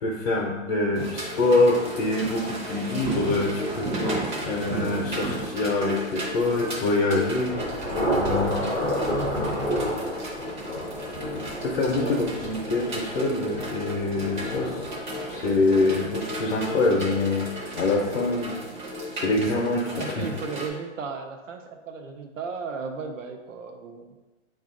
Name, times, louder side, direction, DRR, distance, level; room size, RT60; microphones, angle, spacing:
voice 1, 0.0-4.1 4.4-7.6 8.1-8.9 11.3-14.8 15.3-18.6 19.1-20.3, left 2 dB, 55° left, -2 dB, 0.7 m, -25 dB
sound 1, 0.9-20.7, equal, 35° right, 0.8 m, -34 dB
Thunder / Rain, 6.3-17.9, equal, ahead, 0.6 m, -32 dB
voice 2, 20.0-24.0, right 5 dB, 75° right, 5 dB, 0.7 m, -35 dB
4.9 x 2.5 x 3.7 m, 1.2 s
hypercardioid pair, 180°, 39 cm